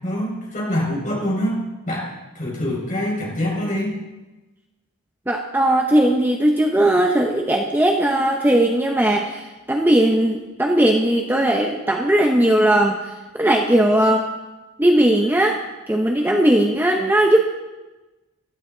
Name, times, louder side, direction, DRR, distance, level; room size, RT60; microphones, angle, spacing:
voice 1, 0.0-1.6 1.9-2.1 2.4-3.9, equal, 35° left, -4 dB, 5.3 m, -24 dB
voice 2, 5.3-9.4 9.7-13.0 13.4-14.3 14.8-15.6 15.9-17.4, right 1 dB, 10° right, 1 dB, 0.7 m, -18 dB
17.0 x 12.0 x 3.9 m, 1.1 s
head